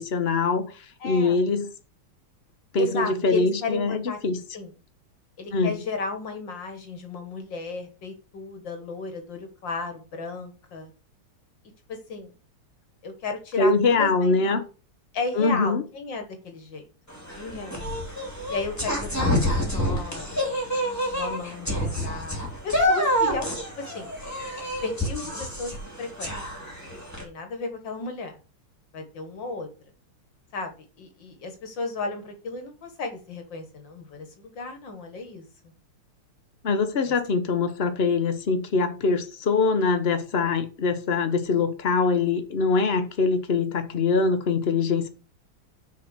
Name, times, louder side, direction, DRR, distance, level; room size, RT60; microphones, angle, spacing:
voice 1, 0.0-1.7 2.7-4.4 5.5-5.8 13.6-14.6 15.4-15.8 36.6-45.1, left 4 dB, 40° left, 1.0 m, -23 dB
voice 2, 1.0-1.4 2.8-4.2 4.5-4.7 5.4-10.9 11.9-12.3 13.0-14.6 15.1-16.8 17.4-17.9 18.5-20.6 21.1-24.1 24.8-25.7 26.0-26.4 27.2-28.3 28.9-29.7 30.5-30.7 31.0-35.4 37.1-37.2, left 3 dB, 60° left, 2.1 m, -34 dB
sound 1, 17.1-27.2, equal, 5° left, 2.6 m, -28 dB
6.8 x 5.2 x 6.2 m
omnidirectional pair, 2.4 m